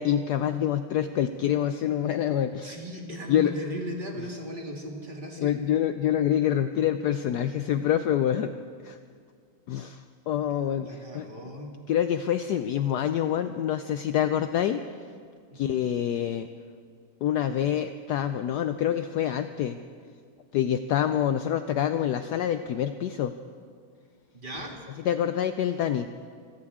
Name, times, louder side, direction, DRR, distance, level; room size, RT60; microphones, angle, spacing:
voice 1, 0.0-2.8 3.3-3.5 4.2-4.3 5.4-8.5 8.8-9.0 9.7-11.3 11.9-14.8 15.6-16.5 17.2-19.8 20.5-23.3 25.0-26.1, left 10 dB, 85° left, 9 dB, 0.9 m, -26 dB
voice 2, 2.6-5.6 10.8-11.7 15.7-15.8 24.3-24.8, equal, 25° right, 0 dB, 1.8 m, -37 dB
25.5 x 15.5 x 3.6 m, 2.1 s
omnidirectional pair, 2.3 m